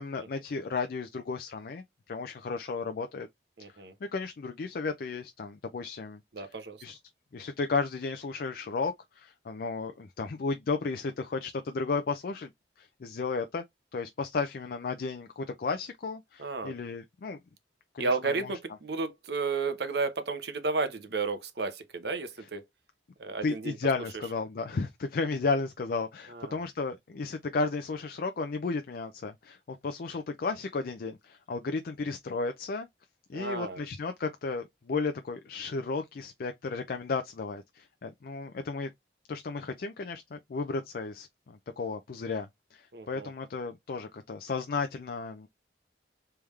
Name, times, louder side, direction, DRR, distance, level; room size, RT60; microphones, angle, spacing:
voice 1, 0.0-3.3 3.7-3.8 4.1-6.5 6.8-7.0 7.3-12.5 12.8-13.6 13.9-17.4 17.9-18.5 23.4-32.9 33.3-38.9 39.3-45.5, left 4 dB, 55° left, 0.4 m, -34 dB
voice 2, 3.6-3.9 6.3-6.8 16.4-16.7 18.0-22.6 23.2-23.8 26.3-26.6 33.3-33.8 42.9-43.3, right 4 dB, 65° right, 0.9 m, -32 dB
3.4 x 3.3 x 3.1 m
head